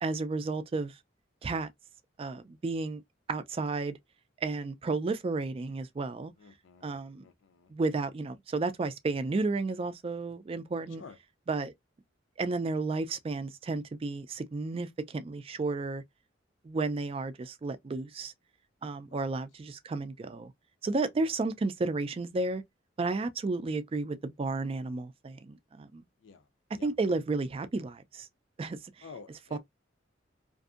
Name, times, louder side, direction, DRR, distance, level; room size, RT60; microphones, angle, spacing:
voice 1, 0.0-1.0 1.4-1.7 2.2-3.0 3.3-4.0 4.4-6.3 6.8-7.2 7.7-11.0 11.5-11.7 12.4-16.0 16.6-18.3 18.8-20.5 20.8-22.6 23.0-26.0 26.8-28.3 28.6-29.0 29.5-29.6, right 3 dB, 30° right, 0.3 m, -32 dB
voice 2, 6.4-7.7 11.0-11.2 19.1-19.2 26.2-26.5 26.8-26.9 29.0-29.6, left 5 dB, 80° left, 0.5 m, -50 dB
2.6 x 2.5 x 2.4 m
head